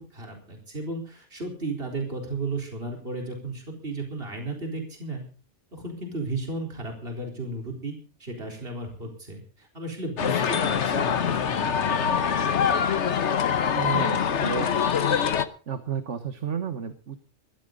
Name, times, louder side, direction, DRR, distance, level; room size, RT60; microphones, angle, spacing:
voice 1, 0.0-5.2 5.7-12.1, right 2 dB, 55° right, 2 dB, 4.4 m, -34 dB
sound 1, 10.2-15.4, left 7 dB, 75° left, 1.4 m, -24 dB
voice 2, 13.7-14.9 15.7-17.2, right 7 dB, 85° right, 9 dB, 1.7 m, -32 dB
20.5 x 14.0 x 3.9 m, 0.35 s
omnidirectional pair, 1.2 m